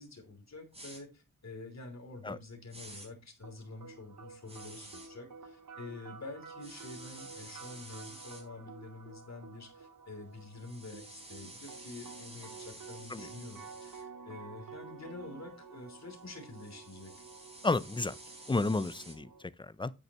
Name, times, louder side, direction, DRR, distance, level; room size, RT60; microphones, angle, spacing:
voice 1, 0.0-17.1, left 3 dB, 50° left, 3.2 m, -48 dB
sound 1, 0.7-1.0 2.7-3.1 4.5-5.1 6.6-8.4 10.5-14.0 16.1-19.1, right 1 dB, 15° right, 4.6 m, -51 dB
sound 2, 3.4-19.4, right 5 dB, 70° right, 1.9 m, -51 dB
voice 2, 17.6-18.2 18.5-19.9, left 3 dB, 15° left, 0.5 m, -32 dB
9.6 x 8.6 x 3.0 m
wide cardioid pair, 75°, 34 cm